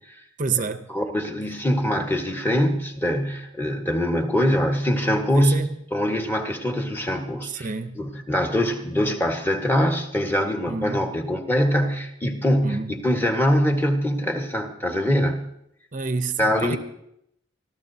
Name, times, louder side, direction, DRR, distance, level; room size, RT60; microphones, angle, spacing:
voice 1, 0.4-0.9 5.3-5.7 7.4-8.0 10.7-11.1 12.6-12.9 15.9-16.8, right 4 dB, 40° right, 0.7 m, -28 dB
voice 2, 0.9-7.7 7.9-15.4 16.4-16.8, equal, 10° left, 1.4 m, -23 dB
24.5 x 14.5 x 2.8 m
head